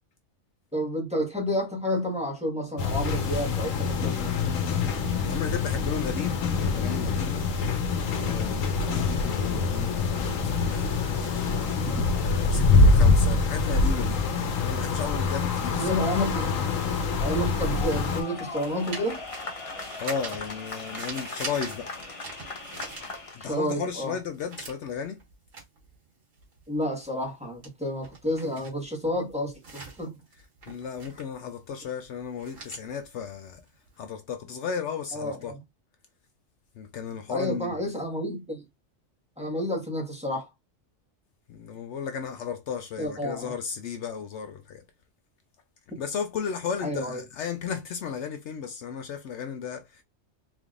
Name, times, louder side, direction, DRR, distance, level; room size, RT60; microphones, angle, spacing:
voice 1, 0.7-4.4 11.8-12.0 15.8-16.5 17.2-19.2 23.4-24.1 26.7-30.1 35.1-35.6 37.3-38.6 39.4-40.5 43.0-43.5 46.8-47.2, equal, 5° right, 1.3 m, -30 dB
sound 1, 2.8-18.2, left 3 dB, 85° left, 1.2 m, -25 dB
voice 2, 5.3-6.5 6.7-7.4 8.2-10.5 12.2-15.9 19.7-21.9 23.3-25.2 30.7-33.6 34.0-35.5 36.7-37.8 41.5-44.8 46.0-50.0, left 7 dB, 70° left, 0.8 m, -34 dB
sound 2, 15.9-23.6 24.0-34.0, right 3 dB, 85° right, 2.0 m, -44 dB
sound 3, 17.6-23.6, left 3 dB, 30° left, 0.7 m, -39 dB
4.1 x 3.5 x 2.4 m
omnidirectional pair, 1.3 m